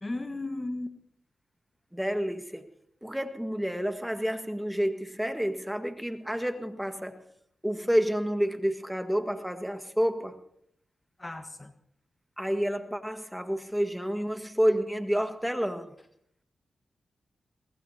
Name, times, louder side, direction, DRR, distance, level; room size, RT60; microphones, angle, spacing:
voice 1, 0.0-0.9 11.2-11.7, left 2 dB, 30° left, 8 dB, 1.4 m, -35 dB
voice 2, 1.9-2.6 3.0-7.2 7.6-10.4 12.4-15.9, equal, 5° right, 7 dB, 1.7 m, -29 dB
24.0 x 19.5 x 2.9 m, 0.71 s
supercardioid pair, 40°, 0 cm